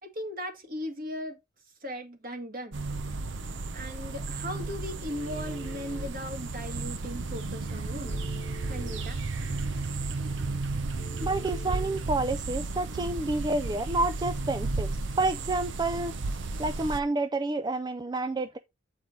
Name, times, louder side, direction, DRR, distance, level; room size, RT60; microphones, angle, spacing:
voice 1, 0.0-1.4 1.8-2.9 3.7-8.3 8.7-9.2, equal, 45° right, 1.9 m, -38 dB
sound 1, 2.7-17.0, right 3 dB, 70° right, 0.7 m, -33 dB
Telephone, 5.1-6.1 8.0-9.1 11.0-12.0, left 1 dB, 35° left, 0.9 m, -47 dB
voice 2, 11.2-14.9 15.2-16.1 16.6-18.6, right 2 dB, 20° right, 0.3 m, -29 dB
8.5 x 4.7 x 4.0 m
head